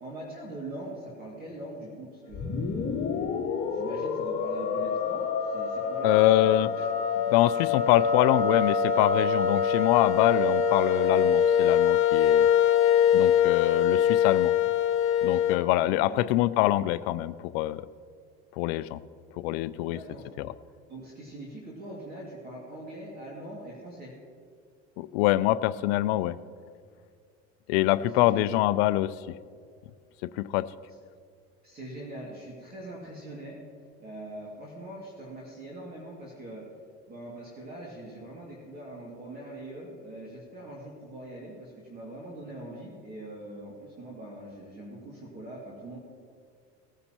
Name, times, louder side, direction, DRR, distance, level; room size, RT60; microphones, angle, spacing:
voice 1, 0.0-3.2 3.7-6.7 16.1-16.2 19.8-20.3 20.9-24.1 28.0-28.7 31.6-33.6 34.0-36.6 37.1-46.0, right 1 dB, 30° right, -4 dB, 2.5 m, -42 dB
sound 1, 2.3-15.6, left 7 dB, 40° left, 1.6 m, -24 dB
voice 2, 6.0-6.7 7.3-12.5 13.1-14.5 15.2-17.8 18.6-19.0 19.4-20.0 20.4-20.5 25.0-26.4 27.7-29.1 30.3-30.7, left 15 dB, 80° left, 14 dB, 0.5 m, -25 dB
19.5 x 9.6 x 3.0 m, 2.1 s
supercardioid pair, 120°, 30 cm